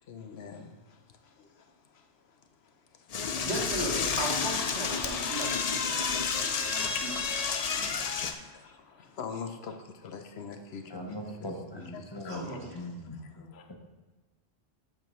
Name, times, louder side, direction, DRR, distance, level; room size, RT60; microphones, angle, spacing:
voice 1, 0.1-0.6 7.2-7.3 8.3-8.4 9.2-9.5 10.1-11.1 11.7-12.6, left 6 dB, 65° left, 7 dB, 0.9 m, -41 dB
Door / Toilet flush, 3.1-8.3, left 5 dB, 50° left, 0.5 m, -30 dB
voice 2, 3.4-5.9 6.7-7.4 7.7-8.1 12.3-12.7, right 1 dB, 65° right, -4 dB, 2.1 m, -37 dB
voice 3, 10.9-13.7, left 1 dB, 25° left, 1 dB, 0.9 m, -41 dB
7.7 x 6.9 x 3.1 m, 1.3 s
omnidirectional pair, 1.2 m